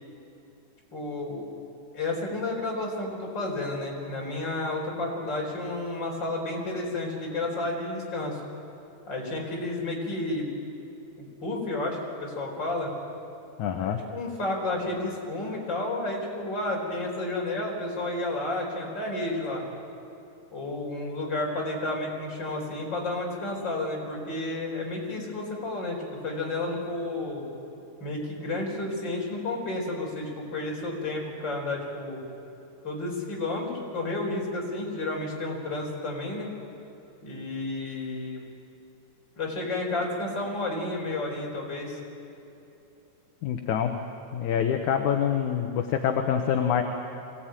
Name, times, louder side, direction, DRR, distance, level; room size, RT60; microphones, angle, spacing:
voice 1, 0.9-1.5 1.9-8.4 9.1-10.5 11.2-12.9 13.7-19.7 20.5-27.5 28.0-32.2 32.8-36.5 37.2-38.4 39.4-42.0, left 2 dB, 30° left, -2 dB, 4.9 m, -31 dB
voice 2, 13.6-14.0 43.4-43.9 44.3-46.8, left 8 dB, 70° left, 4 dB, 2.3 m, -26 dB
24.0 x 17.5 x 9.0 m, 2.9 s
omnidirectional pair, 3.9 m